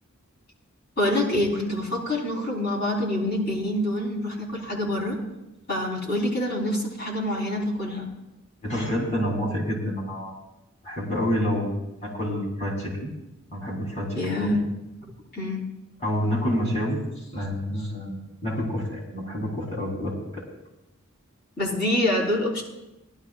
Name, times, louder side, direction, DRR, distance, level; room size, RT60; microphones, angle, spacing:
voice 1, 1.0-5.2 5.7-8.1 14.2-14.7 15.3-15.6 21.6-22.6, left 1 dB, 50° left, -3 dB, 4.0 m, -26 dB
voice 2, 8.6-10.4 10.8-11.7 12.0-13.1 13.5-14.6 16.0-17.0 17.3-18.2 18.4-20.4, equal, 35° left, -4 dB, 3.8 m, -28 dB
19.5 x 12.5 x 2.5 m, 0.94 s
head